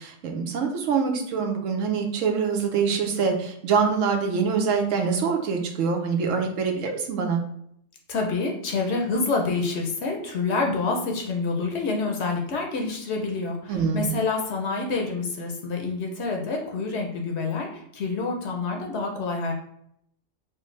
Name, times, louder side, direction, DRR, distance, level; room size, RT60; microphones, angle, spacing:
voice 1, 0.0-7.4 13.7-14.1, right 5 dB, 80° right, 3 dB, 1.1 m, -25 dB
voice 2, 8.1-19.5, left 3 dB, 65° left, 2 dB, 0.9 m, -27 dB
4.5 x 2.1 x 3.1 m, 0.72 s
omnidirectional pair, 1.3 m